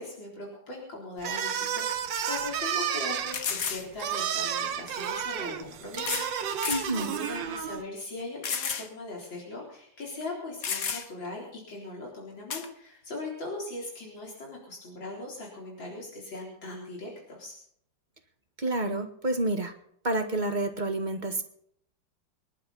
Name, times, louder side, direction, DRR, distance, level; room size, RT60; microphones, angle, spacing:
voice 1, 0.0-17.6, left 2 dB, 85° left, -3 dB, 4.6 m, -40 dB
sound 1, 1.2-7.8, right 8 dB, 75° right, 1.8 m, -31 dB
sound 2, 1.5-1.6 2.2-2.3 3.3-3.9 5.0-5.1 6.0-6.3 6.6-6.9 7.4-7.5 8.4-8.9 9.2-9.3 10.2-10.3 10.6-11.3 12.5-12.7, left 6 dB, 50° left, 1.7 m, -32 dB
voice 2, 6.7-7.1 18.6-19.7 20.0-21.4, right 2 dB, 25° right, 6 dB, 1.8 m, -29 dB
26.5 x 11.5 x 4.2 m, 0.68 s
omnidirectional pair, 2.0 m